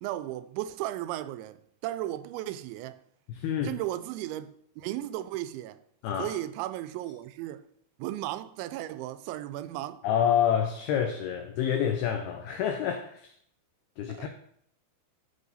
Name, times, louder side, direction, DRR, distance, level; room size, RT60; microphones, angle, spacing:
voice 1, 0.0-3.0 3.6-5.8 6.2-7.7 8.0-10.0 14.1-14.3, right 14 dB, 90° right, 2.9 m, -35 dB
voice 2, 3.3-3.8 6.0-6.3 10.0-13.3 14.0-14.3, left 9 dB, 80° left, 2.3 m, -28 dB
12.5 x 5.6 x 4.1 m
omnidirectional pair, 5.2 m